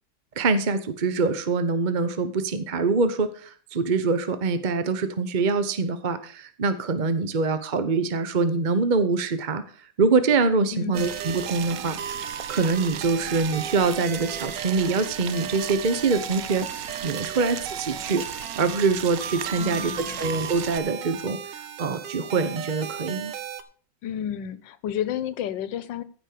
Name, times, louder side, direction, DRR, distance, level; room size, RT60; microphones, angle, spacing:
voice 1, 0.4-18.2 18.6-23.3, right 4 dB, 40° right, 11 dB, 0.7 m, -24 dB
voice 2, 10.7-11.2 19.5-20.3 24.0-26.0, left 10 dB, 90° left, 16 dB, 1.5 m, -31 dB
sound 1, 10.9-23.6, right 8 dB, 85° right, 1.6 m, -36 dB
Boiling, 11.0-20.8, right 11 dB, 65° right, 1.0 m, -37 dB
15.0 x 5.3 x 6.7 m, 0.43 s
omnidirectional pair, 1.9 m